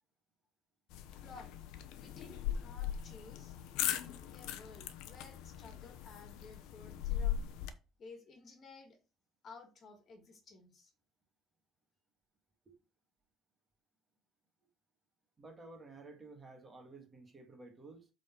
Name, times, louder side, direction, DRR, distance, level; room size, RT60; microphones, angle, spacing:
sound 1, 0.9-7.7, left 10 dB, 85° left, 0.9 m, -39 dB
voice 1, 1.2-1.5 1.9-3.6 4.0-7.5 8.0-9.0 9.4-10.9, left 3 dB, 40° left, 2.0 m, -55 dB
voice 2, 15.4-18.1, right 3 dB, 25° right, 2.0 m, -53 dB
8.0 x 4.1 x 4.5 m
cardioid pair, 135°, 0 cm